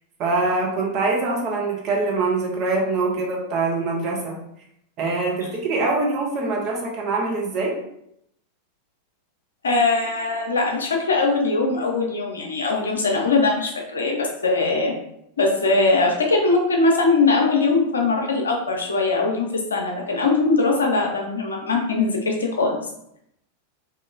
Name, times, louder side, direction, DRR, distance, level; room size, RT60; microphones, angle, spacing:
voice 1, 0.2-4.4 5.0-7.8, right 3 dB, 35° right, -1 dB, 0.8 m, -24 dB
voice 2, 9.6-14.9 15.4-22.8, left 3 dB, 70° left, 1 dB, 0.6 m, -21 dB
2.9 x 2.7 x 2.4 m, 0.76 s
figure-of-eight pair, 90°, 0 cm